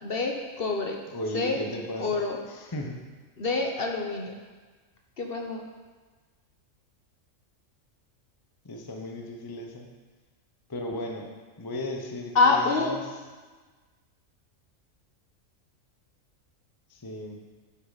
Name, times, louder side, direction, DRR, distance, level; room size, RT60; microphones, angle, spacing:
voice 1, 0.0-1.0 1.3-1.6 2.0-2.4 3.4-4.3 5.2-5.6 12.3-13.0, left 3 dB, 50° left, 1 dB, 1.1 m, -26 dB
voice 2, 1.1-2.2 2.5-3.0 8.6-9.9 10.7-11.3 11.6-13.0 16.9-17.4, left 1 dB, 20° left, 2 dB, 0.7 m, -35 dB
9.6 x 8.5 x 4.0 m, 1.4 s
omnidirectional pair, 1.4 m